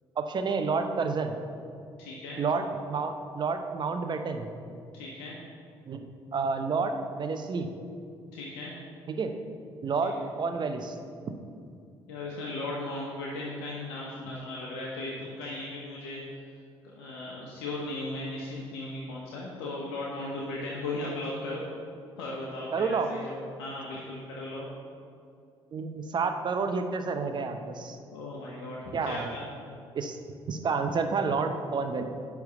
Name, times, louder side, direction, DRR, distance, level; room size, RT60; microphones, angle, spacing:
voice 1, 0.2-1.3 2.4-4.5 5.9-6.0 6.3-7.7 9.1-9.3 9.8-11.0 22.7-23.1 25.7-28.0 28.9-29.4 29.9-30.2 30.5-32.0, right 4 dB, 35° right, 7 dB, 0.8 m, -29 dB
voice 2, 2.0-2.4 4.9-5.4 8.3-8.7 10.2-10.3 12.1-16.2 16.8-21.6 22.2-24.6 28.1-29.4, left 2 dB, 65° left, -4 dB, 1.1 m, -37 dB
10.5 x 3.6 x 6.8 m, 2.4 s
figure-of-eight pair, 50°, 13 cm